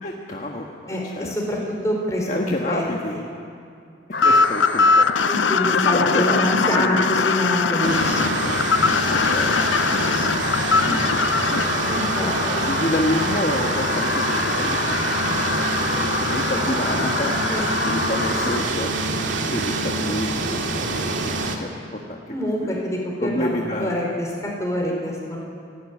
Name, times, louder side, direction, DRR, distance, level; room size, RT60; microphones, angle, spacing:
voice 1, 0.0-1.3 2.3-3.2 4.2-5.1 5.7-7.1 7.7-8.8 9.0-9.5 10.7-11.2 11.9-12.0 12.5-15.0 15.2-18.9 19.5-22.3 22.6-22.8 23.2-24.0, left 1 dB, 40° left, -1 dB, 1.5 m, -29 dB
voice 2, 0.9-2.8 3.1-3.2 5.3-8.1 11.9-12.8 17.5-17.6 22.3-25.4, left 1 dB, 15° left, -1 dB, 5.0 m, -26 dB
sound 1, 4.1-18.6, left 3 dB, 70° left, 3.2 m, -26 dB
sound 2, 4.2-11.7, left 5 dB, 85° left, 0.6 m, -21 dB
sound 3, 7.8-21.6, right 2 dB, 90° right, 2.3 m, -26 dB
28.5 x 12.5 x 9.9 m, 2.4 s
head